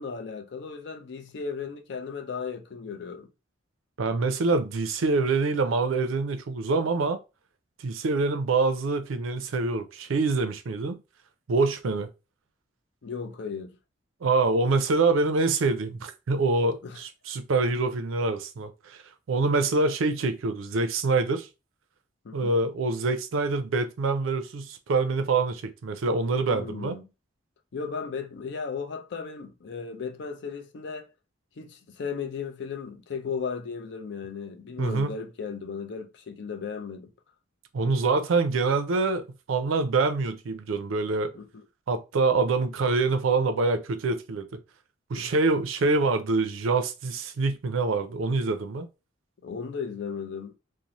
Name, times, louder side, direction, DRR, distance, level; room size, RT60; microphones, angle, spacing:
voice 1, 0.0-3.3 13.0-13.8 16.8-17.0 22.2-22.5 26.5-27.0 27.7-31.1 31.6-37.1 41.3-41.5 45.1-45.3 49.4-50.6, left 5 dB, 60° left, 0.4 m, -35 dB
voice 2, 4.0-7.2 7.8-11.0 11.5-12.1 14.2-19.0 19.3-21.5 22.3-27.0 34.8-35.1 37.7-41.3 41.9-44.5 45.1-48.9, right 3 dB, 85° right, 0.4 m, -25 dB
2.6 x 2.0 x 2.9 m
head